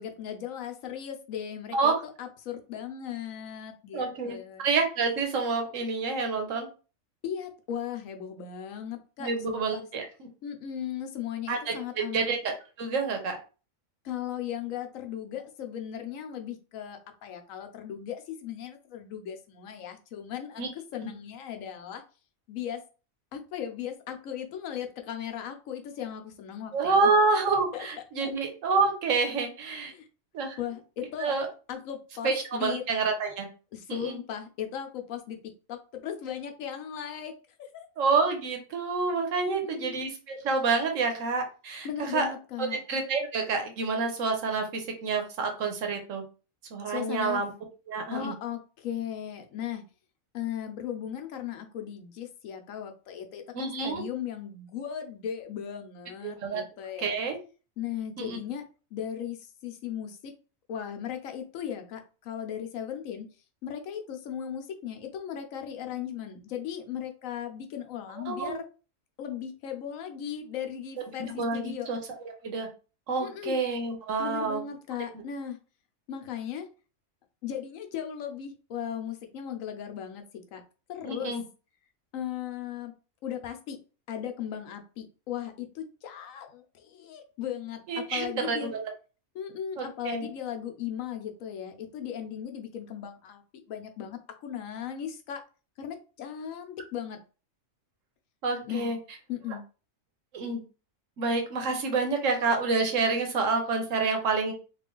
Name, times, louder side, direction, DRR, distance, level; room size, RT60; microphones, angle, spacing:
voice 1, 0.0-4.6 7.2-9.8 10.4-12.3 14.0-22.0 22.5-22.8 23.3-27.1 27.7-27.8 28.2-28.3 29.9-30.1 30.6-31.3 31.7-32.8 33.7-35.4 35.7-37.9 39.6-40.0 41.8-42.8 46.9-47.4 48.1-49.8 50.3-57.2 57.8-58.6 58.9-60.3 60.7-63.3 63.6-68.6 69.2-71.9 73.2-73.6 74.2-75.6 76.1-76.7 77.4-80.2 80.5-80.6 80.9-81.3 82.1-82.9 83.2-83.8 84.1-88.8 89.3-93.4 93.7-95.4 95.8-97.2 98.6-98.9 99.3-99.6, left 9 dB, 80° left, 5 dB, 1.1 m, -37 dB
voice 2, 3.9-6.7 9.2-10.0 11.5-11.7 12.1-13.4 20.6-20.7 26.7-29.9 30.3-30.6 31.2-31.5 32.2-33.5 33.9-34.2 38.0-42.3 42.6-46.2 46.7-47.5 47.9-48.3 53.5-54.0 56.4-56.6 57.0-57.4 58.2-58.4 68.3-68.6 71.2-72.0 72.4-72.7 73.1-74.6 81.0-81.4 87.9-88.8 89.8-90.3 98.4-99.0 100.3-100.6 101.2-104.5, right 4 dB, 75° right, 4 dB, 1.2 m, -28 dB
3.2 x 2.4 x 3.7 m, 0.35 s
omnidirectional pair, 1.4 m